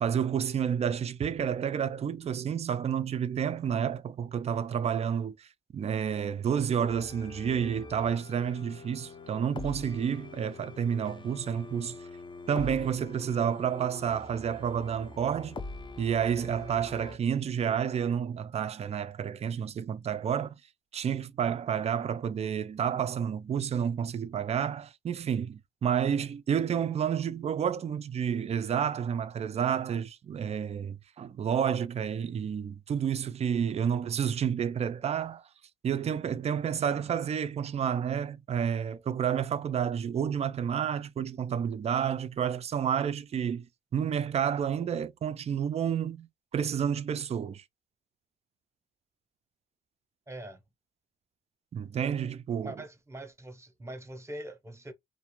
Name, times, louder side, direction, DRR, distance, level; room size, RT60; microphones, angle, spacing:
voice 1, 0.0-12.0 12.5-15.6 16.0-20.6 20.9-35.4 35.8-43.7 43.9-47.6 51.7-52.7, right 8 dB, 35° right, 0.4 m, -30 dB
sound 1, 6.9-17.2, left 3 dB, 25° left, 0.5 m, -44 dB
voice 2, 50.3-50.6 52.6-54.9, right 1 dB, 15° right, 0.8 m, -43 dB
2.4 x 2.1 x 3.0 m
cardioid pair, 90°, 20 cm